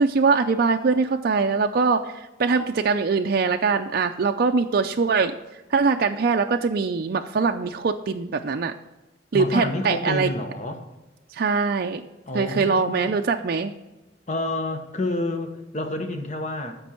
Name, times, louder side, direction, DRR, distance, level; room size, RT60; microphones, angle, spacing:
voice 1, 0.0-5.3 5.7-8.7 9.3-10.3 11.3-12.0 12.3-13.7, right 4 dB, 55° right, 5 dB, 0.4 m, -22 dB
voice 2, 9.3-10.9 12.3-13.1 14.3-16.8, left 2 dB, 40° left, 6 dB, 1.2 m, -29 dB
13.5 x 5.3 x 4.4 m, 1.1 s
head